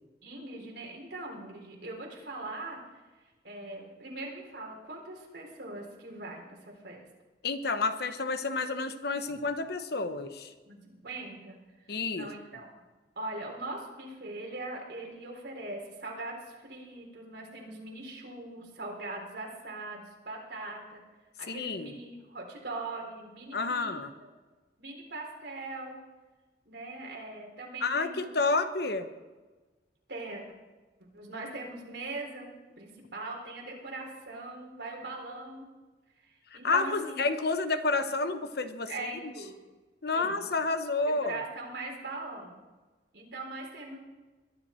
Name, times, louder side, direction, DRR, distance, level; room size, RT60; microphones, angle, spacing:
voice 1, 0.2-2.8 3.4-7.0 10.6-11.6 12.1-12.7 13.2-21.0 21.4-23.9 24.2-24.3 24.8-26.0 26.7-28.3 30.1-30.4 31.1-32.5 32.8-35.7 36.2-37.2 38.9-39.5 40.1-40.5 41.0-42.6 43.1-44.0, right 2 dB, 70° right, -1 dB, 3.6 m, -41 dB
voice 2, 7.4-10.5 11.9-12.3 21.5-22.0 23.5-24.1 27.8-29.1 36.5-39.3 40.0-41.4, left 3 dB, 65° left, 10 dB, 1.0 m, -30 dB
21.5 x 10.5 x 4.4 m, 1.3 s
head